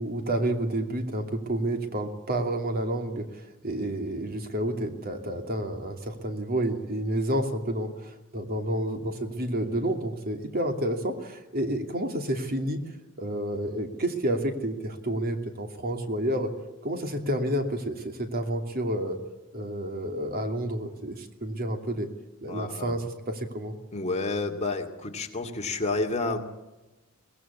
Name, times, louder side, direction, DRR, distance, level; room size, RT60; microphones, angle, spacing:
voice 1, 0.0-12.8 13.2-16.5 16.8-19.2 19.5-22.1 22.4-23.7, right 1 dB, 45° right, 5 dB, 2.7 m, -30 dB
voice 2, 22.5-22.9 23.9-26.4, left 3 dB, 30° left, 3 dB, 2.4 m, -30 dB
24.0 x 18.0 x 8.4 m, 1.1 s
head